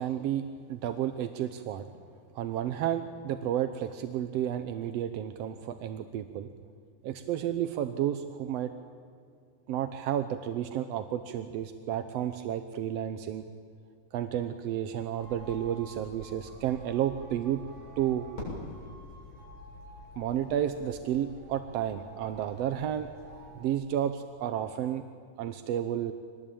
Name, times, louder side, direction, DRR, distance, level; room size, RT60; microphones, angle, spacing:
voice 1, 0.0-1.9 2.3-6.5 7.0-8.7 9.7-13.4 14.1-17.6 18.0-18.3 20.2-23.1 23.5-25.0 25.4-26.1, right 10 dB, 70° right, 9 dB, 1.6 m, -31 dB
sound 1, 15.2-23.7, equal, 80° left, 6.8 m, -49 dB
Fireworks, 18.3-20.5, left 2 dB, 65° left, 8.9 m, -43 dB
25.0 x 20.0 x 8.8 m, 2.2 s
omnidirectional pair, 3.6 m